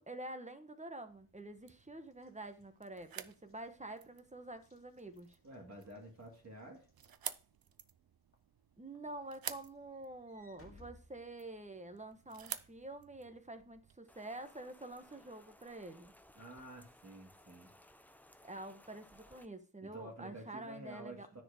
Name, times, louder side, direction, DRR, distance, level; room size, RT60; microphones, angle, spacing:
voice 1, 0.0-5.4 8.8-16.1 18.4-21.4, right 2 dB, 20° right, 1.1 m, -48 dB
sound 1, 1.1-14.0, right 9 dB, 75° right, 0.6 m, -51 dB
Walk footsteps / Slam, 2.1-7.8 8.3-8.6 9.0-12.0, left 2 dB, 35° left, 2.0 m, -65 dB
voice 2, 5.4-6.9 16.3-17.7 19.8-21.4, right 1 dB, 45° right, 2.5 m, -50 dB
Rain, 14.1-19.5, left 1 dB, 5° left, 0.6 m, -62 dB
9.7 x 4.6 x 4.9 m
wide cardioid pair, 100°, 36 cm